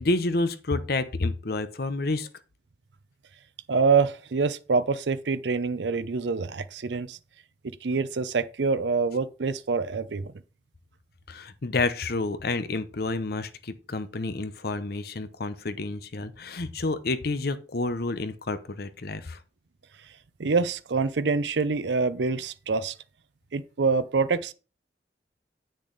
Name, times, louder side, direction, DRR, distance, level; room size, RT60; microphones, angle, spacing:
voice 1, 0.0-2.3 11.3-19.4, left 2 dB, 60° left, 0.8 m, -29 dB
voice 2, 3.7-7.2 7.8-10.3 20.4-22.9 23.5-24.5, right 4 dB, 80° right, 0.6 m, -26 dB
8.5 x 6.4 x 4.0 m
head